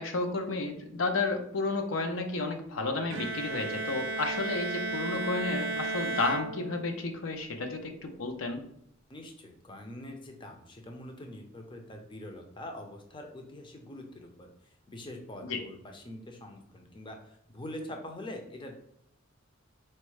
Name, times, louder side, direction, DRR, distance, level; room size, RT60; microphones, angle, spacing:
voice 1, 0.0-8.6 15.4-15.6, left 3 dB, 70° left, 5 dB, 0.6 m, -32 dB
Bowed string instrument, 3.1-7.1, right 2 dB, 65° right, 0.5 m, -34 dB
voice 2, 9.1-14.5 14.9-18.8, left 1 dB, 25° left, 3 dB, 0.6 m, -44 dB
4.3 x 2.1 x 4.6 m, 0.72 s
head